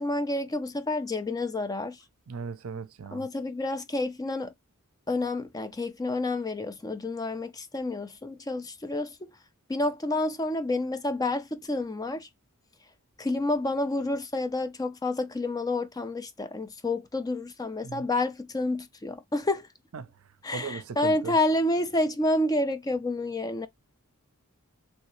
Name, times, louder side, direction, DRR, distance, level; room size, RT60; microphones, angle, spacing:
voice 1, 0.0-2.0 3.1-4.5 5.1-9.3 9.7-12.3 13.2-19.7 20.4-23.7, left 2 dB, 15° left, 0.4 m, -29 dB
voice 2, 2.3-3.3 17.8-18.1 19.9-20.1 20.5-21.3, right 5 dB, 70° right, 0.5 m, -37 dB
3.1 x 2.8 x 3.0 m
head